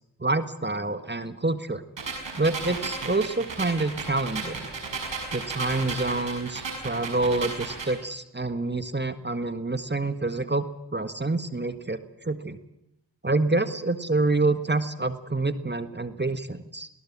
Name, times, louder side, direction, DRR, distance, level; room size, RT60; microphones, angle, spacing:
voice 1, 0.2-1.8 2.4-4.7 5.3-12.6 13.2-16.9, right 2 dB, 25° right, 10 dB, 1.6 m, -27 dB
sound 1, 2.0-8.0, right 4 dB, 80° right, 6.5 m, -34 dB
22.0 x 18.0 x 7.4 m, 0.84 s
cardioid pair, 40°, 43 cm